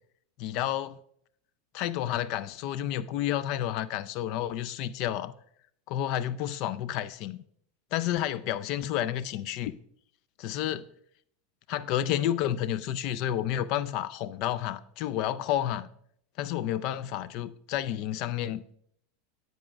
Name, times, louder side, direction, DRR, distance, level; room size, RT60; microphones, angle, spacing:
voice 1, 0.4-1.0 1.7-5.3 5.9-7.4 7.9-9.8 10.4-10.9 11.7-15.9 16.4-18.7, left 11 dB, 55° left, 0.4 m, -30 dB
9.9 x 7.7 x 2.3 m
hypercardioid pair, 90°, 0 cm